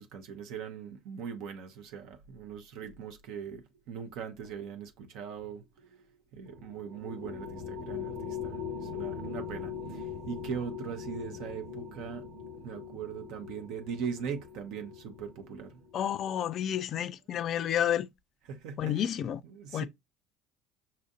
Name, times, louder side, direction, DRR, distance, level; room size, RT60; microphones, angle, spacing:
voice 1, 0.0-12.2 12.6-15.8 18.5-19.0 19.5-19.8, right 7 dB, 65° right, 0.6 m, -40 dB
sound 1, 6.4-16.2, left 6 dB, 85° right, 1.0 m, -41 dB
voice 2, 15.9-18.1 18.8-19.4 19.7-19.8, left 10 dB, 50° left, 0.3 m, -30 dB
5.5 x 2.5 x 2.4 m
hypercardioid pair, 60°, 0 cm